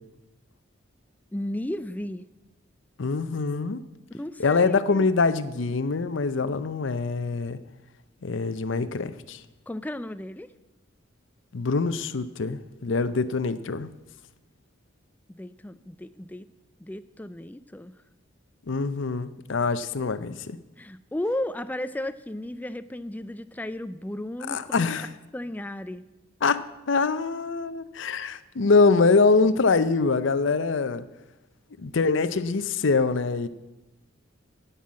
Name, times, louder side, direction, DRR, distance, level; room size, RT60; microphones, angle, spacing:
voice 1, 1.3-2.3 4.1-5.1 9.7-10.5 15.4-16.5 16.8-17.9 20.8-24.9 25.3-26.0, left 1 dB, 10° left, 0.3 m, -34 dB
voice 2, 3.0-3.8 4.4-7.6 8.2-9.4 11.5-13.9 18.7-20.6 24.5-25.1 26.4-31.1 31.8-33.5, left 4 dB, 65° left, 0.6 m, -24 dB
16.5 x 5.6 x 7.4 m
head